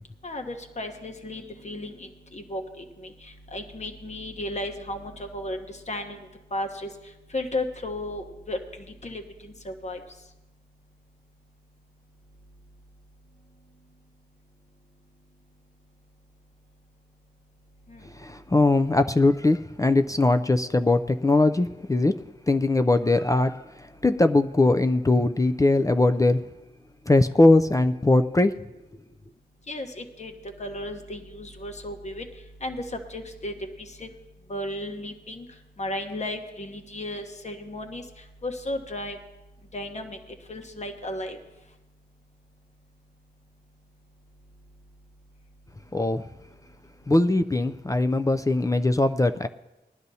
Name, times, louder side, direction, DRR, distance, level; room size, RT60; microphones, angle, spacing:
voice 1, 0.2-6.2 6.5-6.9 7.3-8.6 9.0-10.0 17.9-18.0 29.7-30.3 30.6-32.3 32.6-33.5 33.8-34.1 34.5-35.5 35.8-38.0 38.4-39.2 39.7-40.2 40.5-41.4, left 1 dB, 40° left, 5 dB, 1.1 m, -34 dB
voice 2, 18.2-22.2 22.5-23.7 24.0-26.4 27.1-28.5 45.9-46.2 47.1-49.5, left 2 dB, 20° left, 9 dB, 0.3 m, -21 dB
20.5 x 11.5 x 2.7 m, 1.0 s
wide cardioid pair, 95°, 17 cm